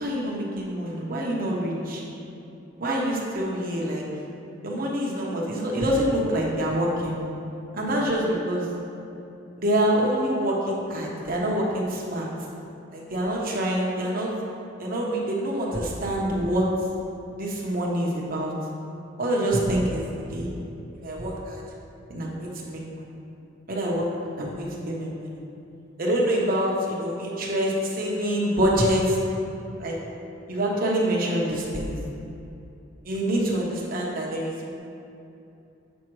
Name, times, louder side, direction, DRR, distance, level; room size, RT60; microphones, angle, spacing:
voice 1, 0.0-2.0 2.8-4.0 4.6-7.2 7.7-8.7 9.6-12.3 12.9-14.3 14.8-16.7 17.4-18.5 19.2-20.0 20.3-20.5 21.0-21.6 22.1-23.0 23.7-24.1 24.4-25.3 26.0-29.2 29.8-30.0 30.5-32.0 33.0-34.8, right 1 dB, 45° right, -3 dB, 1.0 m, -26 dB
7.3 x 5.5 x 3.2 m, 2.8 s
head